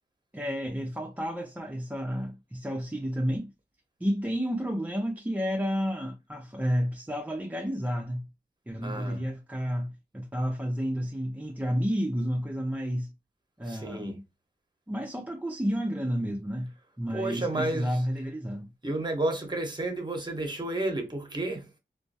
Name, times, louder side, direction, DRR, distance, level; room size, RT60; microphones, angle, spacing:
voice 1, 0.3-3.5 4.0-8.3 8.7-13.1 13.6-14.2 14.9-18.7, equal, 10° right, 0.4 m, -31 dB
voice 2, 8.8-9.2 13.7-14.2 17.1-18.0 18.8-21.7, right 2 dB, 25° right, 0.9 m, -31 dB
2.2 x 2.1 x 2.6 m
wide cardioid pair, 75°, 18 cm